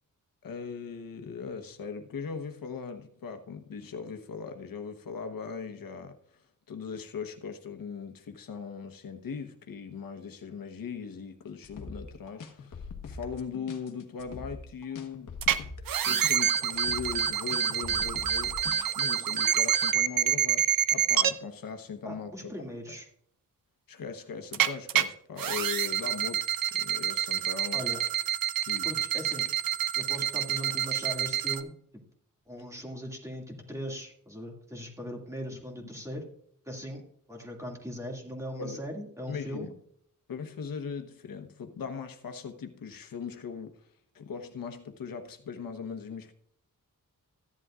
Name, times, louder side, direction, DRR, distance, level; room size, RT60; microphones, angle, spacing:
voice 1, 0.4-15.4 16.0-18.7 18.9-22.6 23.9-27.8 28.7-28.9 35.5-35.9 38.6-38.8 39.3-39.7 40.3-43.9 44.1-46.3, left 6 dB, 90° left, 1.2 m, -39 dB
sound 1, 11.6-18.9, left 4 dB, 65° left, 1.4 m, -43 dB
sound 2, 15.4-15.6 15.9-21.3 24.5-25.0 25.4-31.6, right 10 dB, 80° right, 0.8 m, -27 dB
voice 2, 22.0-23.1 27.7-28.0 28.8-29.5 29.9-31.7 32.5-36.2 36.7-37.0 37.3-39.7, equal, 10° right, 2.3 m, -39 dB
15.0 x 11.0 x 2.5 m
wide cardioid pair, 170°, 33 cm